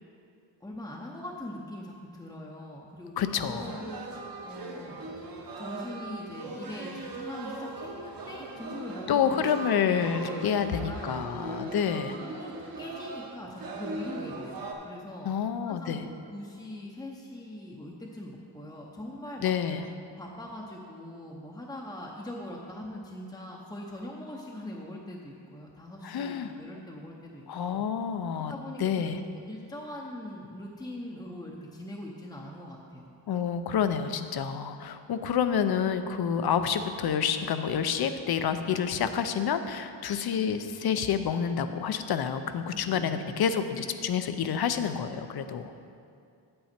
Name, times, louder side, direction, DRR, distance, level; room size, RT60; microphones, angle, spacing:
voice 1, 0.6-5.0 5.6-11.5 11.7-19.8 20.2-27.9 28.3-33.1 42.7-43.2, left 1 dB, 10° left, -2 dB, 0.7 m, -42 dB
voice 2, 3.2-3.8 9.1-12.1 15.2-16.0 19.4-19.9 26.0-26.5 27.5-28.5 28.8-29.2 33.3-45.7, left 7 dB, 60° left, 10 dB, 0.6 m, -28 dB
sound 1, 3.5-14.7, right 2 dB, 50° right, 1.2 m, -39 dB
8.8 x 8.7 x 4.4 m, 2.4 s
wide cardioid pair, 145°, 43 cm